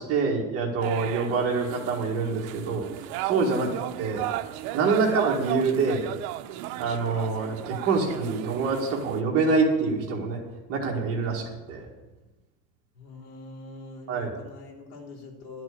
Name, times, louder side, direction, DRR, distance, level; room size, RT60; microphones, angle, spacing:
voice 1, 0.0-2.9 3.2-3.7 4.0-4.3 4.7-6.1 6.8-10.4 10.7-11.9 14.1-14.4, right 4 dB, 30° right, -1 dB, 1.8 m, -26 dB
sound 1, 0.8-9.2, right 15 dB, 75° right, 0.7 m, -35 dB
voice 2, 12.9-15.6, left 2 dB, 85° left, -3 dB, 3.6 m, -43 dB
11.5 x 6.1 x 8.5 m, 1.1 s
cardioid pair, 175°, 43 cm